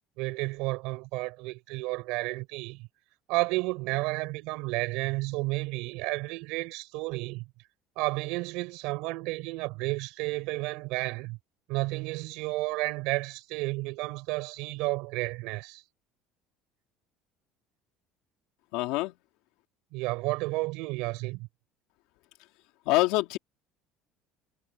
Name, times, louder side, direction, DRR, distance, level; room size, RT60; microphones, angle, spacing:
voice 1, 0.2-2.9 3.3-7.4 8.0-11.4 11.7-15.8 19.9-21.5, right 23 dB, 70° right, 5.6 m, -32 dB
voice 2, 18.7-19.1 22.9-23.4, left 20 dB, 70° left, 2.3 m, -25 dB
cardioid pair, 170°, 0 cm